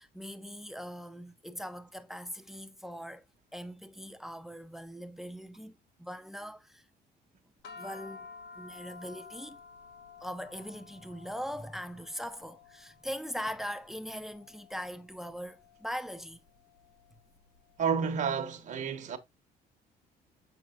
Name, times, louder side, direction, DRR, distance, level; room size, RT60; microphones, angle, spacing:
voice 1, 0.0-3.2 3.5-6.8 7.8-8.3 8.6-9.6 10.2-16.5, equal, ahead, 0.7 m, -41 dB
sound 1, 7.6-18.1, left 5 dB, 85° left, 1.2 m, -52 dB
voice 2, 17.8-19.2, right 6 dB, 45° right, 1.1 m, -30 dB
6.6 x 6.0 x 2.4 m
cardioid pair, 110°, 17 cm